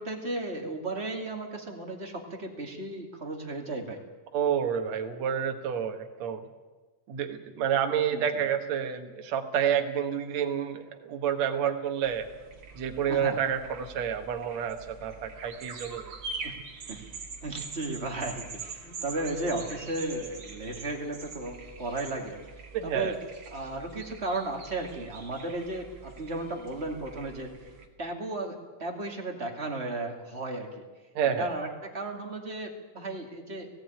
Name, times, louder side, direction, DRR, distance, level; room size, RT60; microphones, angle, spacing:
voice 1, 0.0-4.0 8.1-8.2 13.1-13.4 16.4-16.5 16.9-17.0 17.4-22.4 22.8-23.2 23.5-27.5 28.0-30.8 31.2-33.7, right 2 dB, 20° right, 2 dB, 2.2 m, -34 dB
voice 2, 4.3-6.4 7.1-12.3 12.8-16.1 22.7-23.2 31.2-31.5, right 8 dB, 65° right, 4 dB, 2.5 m, -29 dB
sound 1, 12.0-27.9, right 4 dB, 40° right, 2.5 m, -44 dB
17.5 x 16.0 x 9.2 m, 1.3 s
omnidirectional pair, 3.6 m